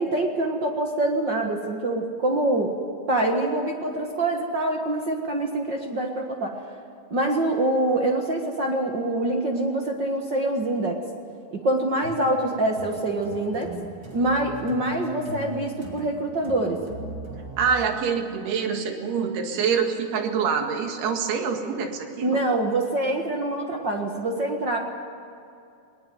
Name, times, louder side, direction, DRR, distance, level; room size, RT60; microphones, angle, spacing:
voice 1, 0.0-2.7 3.1-6.5 7.1-11.0 11.5-13.7 14.1-16.8 22.2-24.8, right 1 dB, 60° right, 2 dB, 1.1 m, -25 dB
sound 1, 12.0-17.9, right 2 dB, 30° right, 3.0 m, -40 dB
voice 2, 17.6-22.4, right 6 dB, 75° right, 4 dB, 4.0 m, -25 dB
20.5 x 20.0 x 9.4 m, 2.5 s
omnidirectional pair, 4.6 m